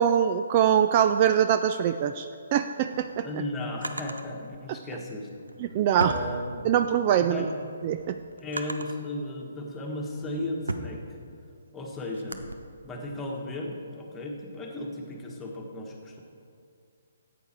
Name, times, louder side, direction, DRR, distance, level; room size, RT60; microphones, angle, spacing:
voice 1, 0.0-3.3 5.6-6.1 6.6-7.5 7.8-8.2, right 9 dB, 30° right, 9 dB, 0.3 m, -23 dB
Drawer open or close, 2.6-4.3 5.3-6.9 7.4-9.1 9.7-12.5, right 2 dB, 70° right, 0.8 m, -38 dB
voice 2, 3.2-5.3 5.9-6.7 7.2-7.5 8.4-11.0 11.7-12.4 12.8-16.2, left 1 dB, 10° left, -1 dB, 1.5 m, -35 dB
14.0 x 8.4 x 4.5 m, 2.3 s
figure-of-eight pair, 135°, 0 cm